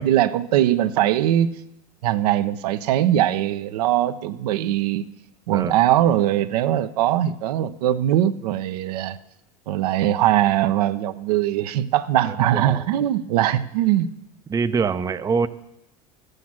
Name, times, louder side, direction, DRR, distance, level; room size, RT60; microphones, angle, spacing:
voice 1, 0.0-1.6 2.0-5.0 5.5-9.2 9.7-14.1, right 12 dB, 75° right, 10 dB, 0.7 m, -21 dB
voice 2, 12.5-12.8 14.5-15.5, right 5 dB, 15° right, 10 dB, 0.6 m, -24 dB
12.5 x 8.0 x 7.3 m, 0.90 s
hypercardioid pair, 100°, 20 cm